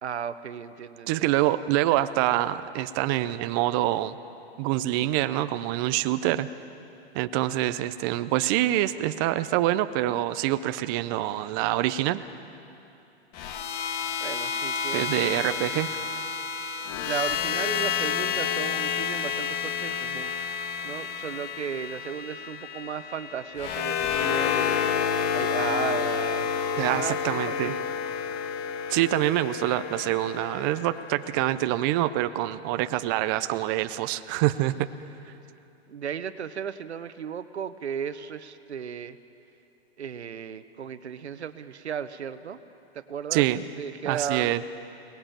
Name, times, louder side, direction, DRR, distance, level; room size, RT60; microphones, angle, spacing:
voice 1, 0.0-1.3 14.2-15.7 17.0-20.3 20.8-24.8 25.3-27.9 35.9-39.2 40.0-42.6 42.9-43.4 43.8-44.5, right 8 dB, 85° right, 12 dB, 1.1 m, -35 dB
voice 2, 1.1-4.2 4.6-6.5 7.1-12.2 14.9-15.9 26.8-27.8 28.9-34.9 43.3-43.6 44.1-44.6, right 14 dB, 20° right, 12 dB, 0.4 m, -26 dB
sound 1, 13.3-31.5, left 7 dB, 30° left, 1.1 m, -30 dB
22.0 x 19.0 x 7.4 m, 2.8 s
hypercardioid pair, 135°, 33 cm